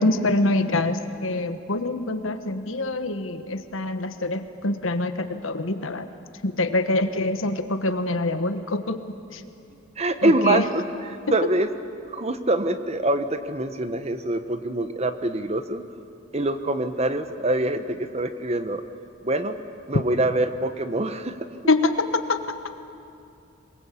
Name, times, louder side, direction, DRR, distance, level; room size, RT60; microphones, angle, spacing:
voice 1, 0.0-6.1 6.4-9.0 9.3-9.4 10.2-10.6 21.7-22.4, left 2 dB, 80° left, 9 dB, 1.3 m, -25 dB
voice 2, 10.0-11.7 12.1-15.8 16.3-18.8 19.2-19.6 19.9-21.3, right 2 dB, 30° right, 10 dB, 1.0 m, -25 dB
22.5 x 21.5 x 8.4 m, 2.6 s
head